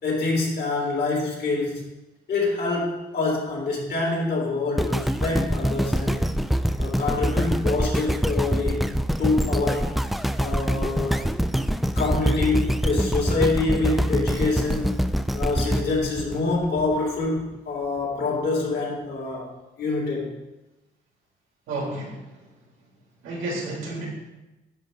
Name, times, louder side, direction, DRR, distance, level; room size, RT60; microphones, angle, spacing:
voice 1, 0.0-1.8 2.3-6.3 6.8-8.8 9.2-9.9 10.4-11.3 12.0-15.0 15.3-19.5 19.8-20.3, left 3 dB, 55° left, -3 dB, 3.4 m, -26 dB
sound 1, 4.8-17.0 17.5-17.6, equal, ahead, 0.3 m, -25 dB
voice 2, 21.7-22.2 23.2-24.1, right 2 dB, 90° right, -4 dB, 3.2 m, -31 dB
10.5 x 3.7 x 6.3 m, 1.0 s
cardioid pair, 90°, 20 cm